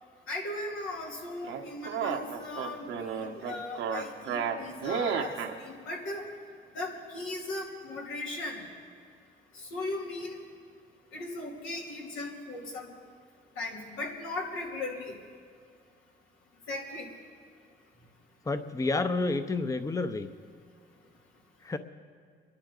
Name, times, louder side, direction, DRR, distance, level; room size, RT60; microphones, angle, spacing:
voice 1, 0.3-6.3 6.7-8.6 9.5-10.4 11.1-12.9 13.6-15.2 16.7-17.1, left 2 dB, 90° left, -2 dB, 3.1 m, -37 dB
sound 1, 1.4-5.5, right 7 dB, 85° right, 1.2 m, -32 dB
voice 2, 18.5-20.3 21.6-21.8, left 3 dB, 15° left, 9 dB, 0.7 m, -29 dB
27.0 x 12.0 x 3.9 m, 2.2 s
cardioid pair, 90°, 20 cm